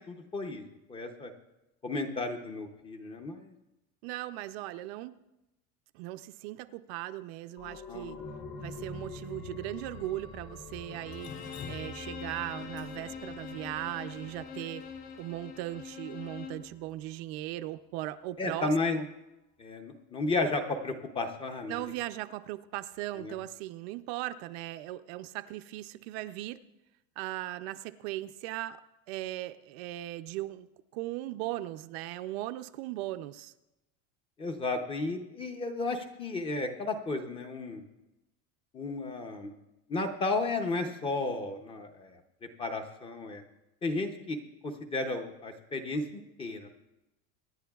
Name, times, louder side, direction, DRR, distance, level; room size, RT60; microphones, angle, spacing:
voice 1, 0.1-1.3 1.8-3.5 7.9-8.2 18.4-19.0 19.6-21.8 23.2-23.3 34.4-37.8 38.7-39.5 39.9-42.2 42.6-43.4 43.8-44.4 44.6-46.7, left 3 dB, 15° left, 5 dB, 0.6 m, -33 dB
voice 2, 4.0-5.2 5.9-8.2 8.6-11.3 11.7-14.8 15.2-19.1 21.7-26.6 27.2-28.8 29.1-33.5, right 15 dB, 60° right, 11 dB, 0.5 m, -38 dB
sound 1, 7.6-16.9 17.3-17.4, left 3 dB, 30° left, 1.0 m, -46 dB
Bowed string instrument, 10.9-16.7, left 6 dB, 85° left, 1.9 m, -44 dB
Drip, 11.1-15.2, left 6 dB, 45° left, 2.7 m, -48 dB
24.5 x 10.5 x 2.3 m, 0.96 s
cardioid pair, 175°, 35 cm